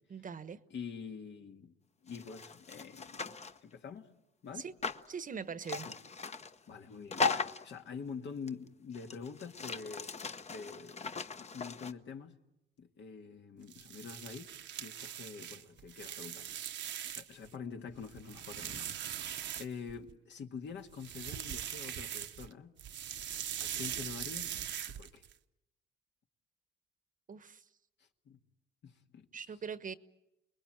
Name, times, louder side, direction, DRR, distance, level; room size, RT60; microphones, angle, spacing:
voice 1, 0.1-0.6 4.5-4.7 5.1-5.9 27.3-27.6 29.3-29.9, right 6 dB, 40° right, 1.1 m, -42 dB
voice 2, 0.7-1.7 2.0-3.3 3.6-4.1 4.4-4.7 5.8-6.0 6.7-10.1 10.5-12.4 12.8-14.5 14.8-16.9 17.2-22.8 23.6-24.6 24.9-25.2 28.3-28.4 28.8-29.3, left 6 dB, 65° left, 1.9 m, -46 dB
sound 1, 2.1-3.6 4.8-5.0 5.6-6.6 7.1-7.7 8.5-8.6 8.9-11.9, left 4 dB, 35° left, 1.1 m, -38 dB
sound 2, 13.6-17.5 17.9-20.1 20.9-22.5 22.8-25.3, right 10 dB, 65° right, 1.0 m, -41 dB
29.0 x 21.0 x 9.0 m
cardioid pair, 90°, 20 cm